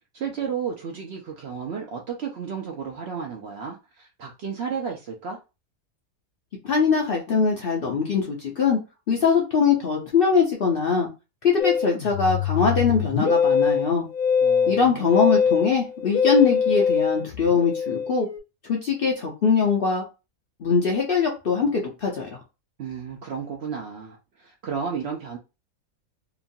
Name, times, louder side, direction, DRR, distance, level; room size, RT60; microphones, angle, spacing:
voice 1, 0.1-5.4 14.4-15.1 22.8-25.4, right 6 dB, 65° right, 0.7 m, -33 dB
voice 2, 6.6-8.8 9.1-11.1 11.4-14.1 14.7-18.3 18.6-20.0 20.6-22.4, left 5 dB, 55° left, 0.7 m, -22 dB
Musical instrument, 11.6-18.4, left 6 dB, 75° left, 1.2 m, -23 dB
2.9 x 2.3 x 2.6 m
omnidirectional pair, 1.5 m